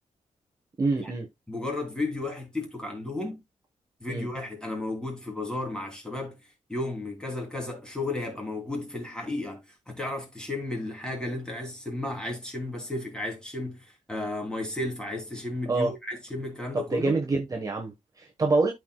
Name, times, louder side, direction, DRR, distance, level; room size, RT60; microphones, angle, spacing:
voice 1, 0.8-1.3 4.1-4.3 15.7-15.9 16.9-18.7, right 3 dB, 30° right, 1.2 m, -26 dB
voice 2, 1.5-3.4 4.0-6.4 6.7-17.2, left 2 dB, 5° left, 2.9 m, -33 dB
13.0 x 4.7 x 2.2 m
wide cardioid pair, 135°, 13 cm